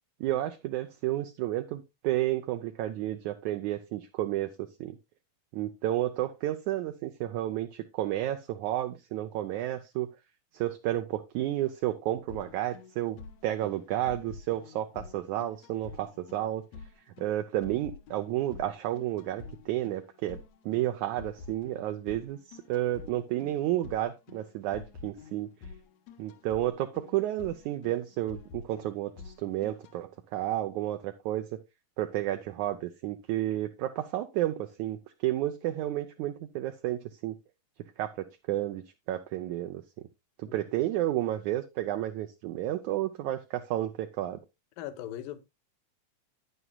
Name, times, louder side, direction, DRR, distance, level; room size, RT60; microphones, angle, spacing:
voice 1, 0.2-5.0 5.5-10.1 10.5-16.6 17.2-20.4 20.7-25.5 26.2-31.5 32.0-37.4 38.0-39.8 40.4-44.4, right 14 dB, 75° right, 1.9 m, -31 dB
sound 1, 12.3-30.0, left 5 dB, 65° left, 1.8 m, -48 dB
voice 2, 44.8-45.4, left 12 dB, 85° left, 2.6 m, -39 dB
11.0 x 9.7 x 2.3 m
omnidirectional pair, 3.9 m